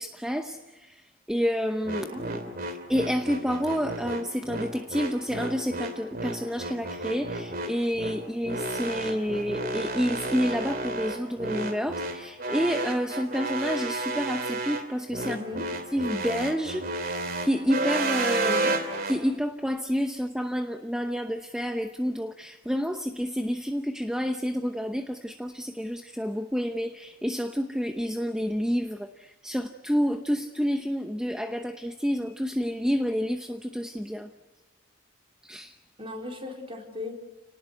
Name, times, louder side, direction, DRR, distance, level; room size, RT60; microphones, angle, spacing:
voice 1, 0.0-2.2 2.9-15.4 15.9-18.5 19.1-34.3 35.4-35.8, equal, 5° right, 6 dB, 0.9 m, -29 dB
sound 1, 1.9-19.2, right 2 dB, 40° right, 2.8 m, -31 dB
voice 2, 2.1-2.6 15.2-15.7 18.4-18.7 36.0-37.1, left 2 dB, 25° right, 2 dB, 4.4 m, -37 dB
29.5 x 19.0 x 8.2 m, 1.1 s
head